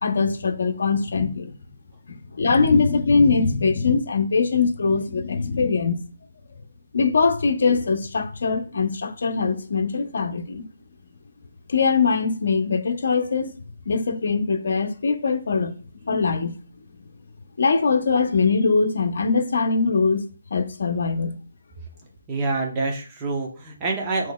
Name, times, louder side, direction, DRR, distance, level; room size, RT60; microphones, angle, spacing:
voice 1, 0.0-1.6 2.3-6.0 6.9-10.7 11.7-13.6 13.9-15.8 16.0-16.6 17.6-21.4, left 4 dB, 65° left, 0.8 m, -22 dB
voice 2, 22.3-24.3, right 3 dB, 20° right, 0.8 m, -26 dB
7.6 x 3.1 x 2.2 m
hypercardioid pair, 160°, 0 cm